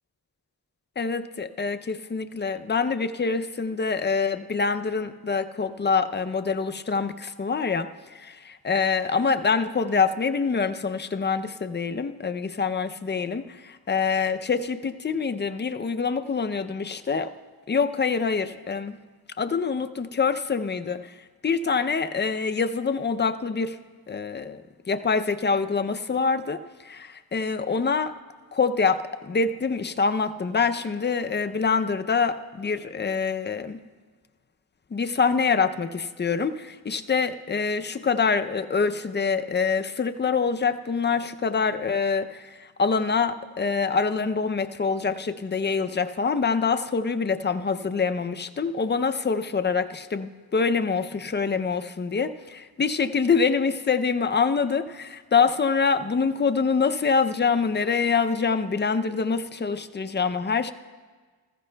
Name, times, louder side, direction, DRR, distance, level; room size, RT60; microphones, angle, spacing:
voice 1, 1.0-17.3 17.7-19.0 19.4-21.2 21.4-23.8 24.1-28.1 28.5-33.8 34.9-60.7, left 5 dB, 25° left, 9 dB, 0.5 m, -25 dB
19.0 x 14.5 x 2.2 m, 1.4 s
wide cardioid pair, 75°, 39 cm